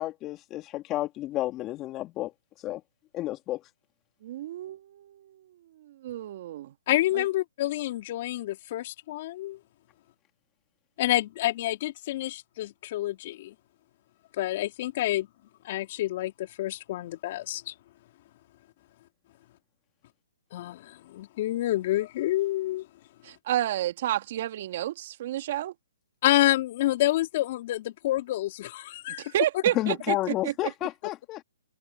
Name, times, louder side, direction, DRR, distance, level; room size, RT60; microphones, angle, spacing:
voice 1, 0.0-2.3 2.6-2.8 3.1-3.6 29.7-31.4, left 15 dB, 25° left, 3.2 m, -31 dB
voice 2, 4.2-5.5 5.8-6.7 7.1-7.2 23.2-25.7 29.2-30.5, right 13 dB, 45° right, 2.6 m, -30 dB
voice 3, 6.9-9.6 11.0-13.5 14.4-15.3 15.6-17.7 20.5-22.9 26.2-29.3, left 15 dB, 45° left, 3.1 m, -28 dB
hypercardioid pair, 145°, 0 cm